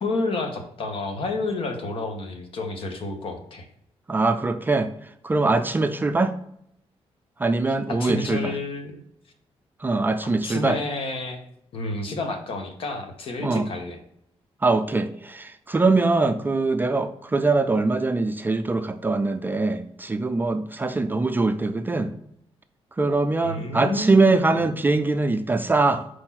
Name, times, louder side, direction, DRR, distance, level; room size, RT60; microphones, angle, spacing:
voice 1, 0.0-3.7 7.7-9.0 10.4-11.4 11.7-14.0 23.4-24.6, left 2 dB, 60° left, 5 dB, 1.3 m, -30 dB
voice 2, 4.1-4.9 5.2-6.3 7.4-8.5 9.8-10.8 13.4-13.7 14.6-22.1 23.0-26.1, right 3 dB, 20° right, 8 dB, 0.4 m, -22 dB
4.8 x 4.3 x 5.8 m, 0.72 s
wide cardioid pair, 150°, 11 cm